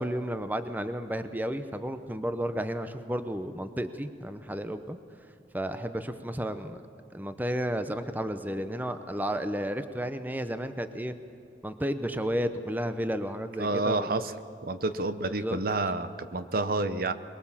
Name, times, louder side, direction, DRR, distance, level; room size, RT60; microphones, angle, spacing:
voice 1, 0.0-5.0 5.5-6.8 7.1-11.1 11.6-14.1 15.3-15.6, equal, 10° right, 9 dB, 0.7 m, -32 dB
voice 2, 13.6-14.2 14.6-17.1, right 2 dB, 50° right, 11 dB, 0.8 m, -29 dB
23.0 x 22.0 x 7.3 m, 2.6 s
head